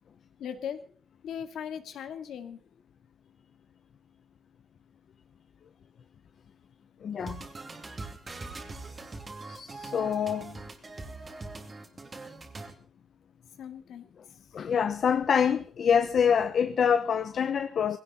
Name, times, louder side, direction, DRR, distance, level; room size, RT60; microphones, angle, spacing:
voice 1, 0.4-0.8 1.2-2.6 13.6-14.1, left 8 dB, 80° left, 2.1 m, -38 dB
voice 2, 7.0-7.5 9.5-10.6 14.5-18.0, left 7 dB, 50° left, 0.7 m, -26 dB
sound 1, 7.2-12.7, right 3 dB, 20° right, 2.6 m, -42 dB
20.5 x 17.0 x 4.2 m
wide cardioid pair, 165°, 0 cm